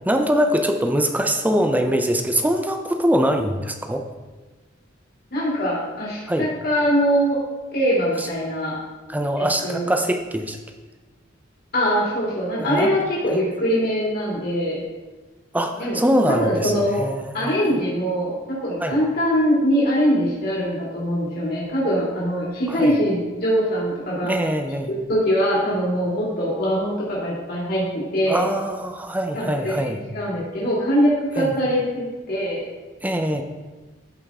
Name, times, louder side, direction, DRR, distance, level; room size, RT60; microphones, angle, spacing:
voice 1, 0.0-4.0 6.3-6.5 8.2-8.3 9.1-10.6 12.7-12.9 15.5-17.5 18.8-19.0 22.7-23.0 24.2-24.9 28.3-30.0 31.4-31.6 33.0-33.4, equal, 10° right, 5 dB, 0.7 m, -23 dB
voice 2, 5.3-7.4 7.7-8.8 9.4-9.9 11.7-14.8 15.8-16.0 16.4-17.0 17.3-24.3 24.9-28.5 29.3-32.6, equal, 50° left, -6 dB, 2.9 m, -22 dB
14.0 x 5.2 x 3.7 m, 1.2 s
head